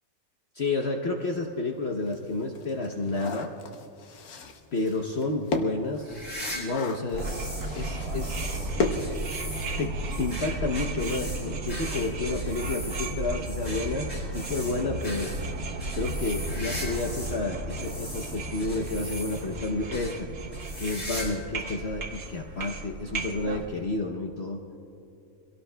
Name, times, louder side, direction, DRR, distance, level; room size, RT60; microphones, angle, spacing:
voice 1, 0.5-3.5 4.7-6.2 6.5-7.5 7.7-8.8 9.8-14.1 14.3-15.3 15.9-20.3 20.8-24.6, left 3 dB, 55° left, 2 dB, 1.0 m, -30 dB
sound 1, 1.3-1.4 1.8-9.9 10.2-10.3 10.6-10.8, left 3 dB, 90° left, 1.4 m, -35 dB
sound 2, 6.0-7.7 8.0-17.4 17.7-19.6 19.9-20.1 20.5-21.4 21.7-21.8 22.6-22.7 23.9-24.0, equal, 25° left, 4.4 m, -40 dB
sound 3, 7.1-23.6, right 2 dB, 80° right, 1.8 m, -34 dB
24.5 x 17.5 x 2.3 m, 2.8 s
omnidirectional pair, 1.5 m